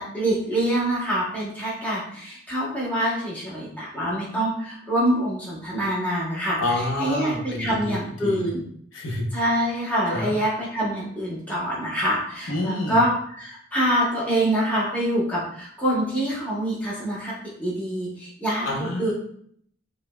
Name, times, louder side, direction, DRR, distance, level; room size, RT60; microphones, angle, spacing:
voice 1, 0.0-6.6 7.0-8.6 9.3-17.3 17.6-19.1, right 1 dB, 5° left, -7 dB, 0.8 m, -25 dB
voice 2, 6.6-8.5 8.9-9.2 10.1-10.3 12.5-13.0 18.6-19.1, left 1 dB, 85° left, -1 dB, 0.7 m, -28 dB
4.9 x 2.1 x 2.2 m, 0.64 s
head